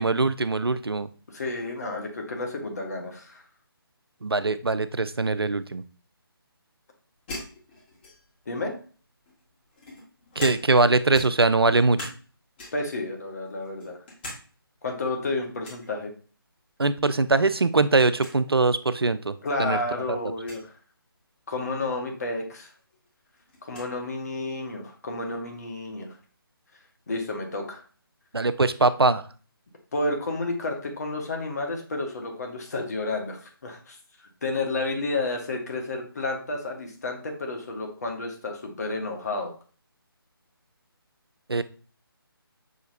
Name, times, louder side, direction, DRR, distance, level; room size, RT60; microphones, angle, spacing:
voice 1, 0.0-1.1 4.2-5.8 10.4-12.1 16.8-19.3 19.6-19.8 20.1-20.2 28.3-29.2 41.5-41.6, right 3 dB, 85° right, 14 dB, 0.4 m, -22 dB
voice 2, 1.3-3.4 8.5-8.7 12.7-14.0 14.8-16.1 19.4-20.7 21.5-22.7 23.6-26.1 27.1-27.8 29.9-34.0 34.4-39.5, left 2 dB, 45° left, 3 dB, 1.2 m, -31 dB
sound 1, 7.3-8.4 9.3-10.9 11.1-12.3 12.6-13.0 13.4-14.4 14.7-14.8 15.6-15.9 17.3-17.7 17.9-18.0 18.2-18.4 19.2-19.3 20.4-20.6 22.3-22.4 22.8-23.9, left 1 dB, 25° left, 1.4 m, -41 dB
6.3 x 2.8 x 2.6 m, 0.39 s
figure-of-eight pair, 150°, 12 cm